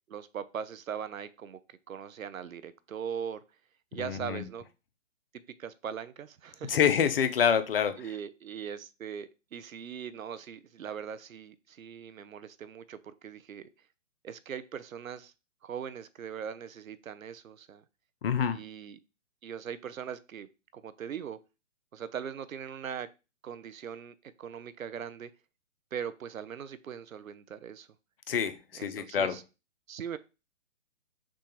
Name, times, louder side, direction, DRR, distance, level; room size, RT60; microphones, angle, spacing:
voice 1, 0.1-1.6 1.9-3.4 3.9-4.6 5.6-6.8 8.0-13.7 14.2-15.3 15.6-17.8 18.5-19.0 19.4-21.4 21.9-23.1 23.4-25.3 25.9-27.9 28.7-29.4 29.9-30.2, right 8 dB, 85° right, 0.6 m, -40 dB
voice 2, 4.0-4.4 6.7-8.0 18.2-18.6 28.3-29.4, left 8 dB, 45° left, 0.5 m, -27 dB
6.0 x 2.3 x 2.9 m
figure-of-eight pair, 135°, 40 cm